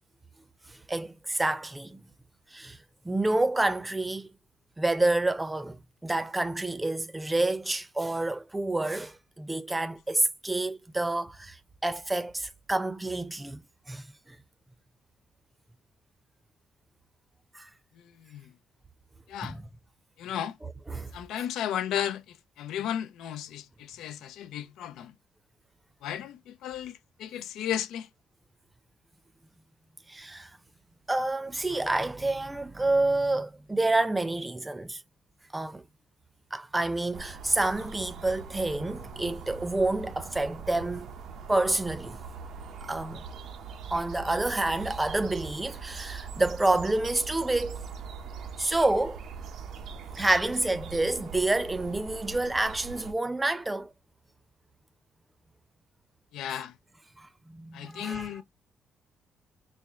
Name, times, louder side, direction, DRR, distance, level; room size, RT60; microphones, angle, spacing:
voice 1, 0.7-2.0 2.5-2.8 3.0-4.3 4.8-13.6 13.9-14.4 17.5-17.7 19.4-19.6 20.6-21.1 30.1-30.5 31.1-35.0 35.5-35.8 36.5-41.1 41.5-42.2 42.9-43.2 43.9-47.8 48.6-49.2 50.2-53.9 57.2-58.4, right 2 dB, 15° right, 0.6 m, -28 dB
voice 2, 18.0-18.5 19.3-19.6 20.2-20.6 21.1-25.1 26.0-28.1 56.3-56.7 57.7-58.4, left 10 dB, 85° left, 0.5 m, -34 dB
sound 1, 37.1-53.1, right 5 dB, 75° right, 0.7 m, -42 dB
4.3 x 2.1 x 3.5 m
cardioid pair, 90°, 0 cm